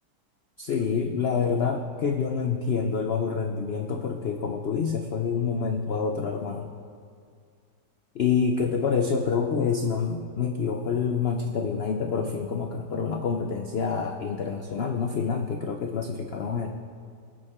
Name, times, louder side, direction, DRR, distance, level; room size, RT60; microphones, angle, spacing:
voice 1, 0.6-6.7 8.1-16.7, left 6 dB, 85° left, 4 dB, 0.5 m, -27 dB
20.5 x 8.3 x 3.6 m, 2.2 s
omnidirectional pair, 1.9 m